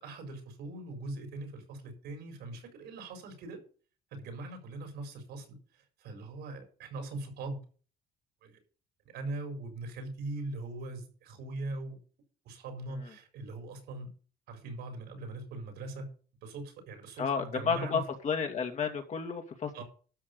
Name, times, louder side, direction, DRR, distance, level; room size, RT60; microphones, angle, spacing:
voice 1, 0.0-3.6 4.1-7.6 8.4-8.6 9.1-12.0 12.4-14.1 14.5-16.1 16.4-18.0 19.7-19.8, right 2 dB, 80° right, 5 dB, 4.7 m, -41 dB
voice 2, 17.2-19.8, left 6 dB, 45° left, 4 dB, 2.4 m, -32 dB
12.5 x 5.7 x 6.7 m, 0.39 s
cardioid pair, 110°, 17 cm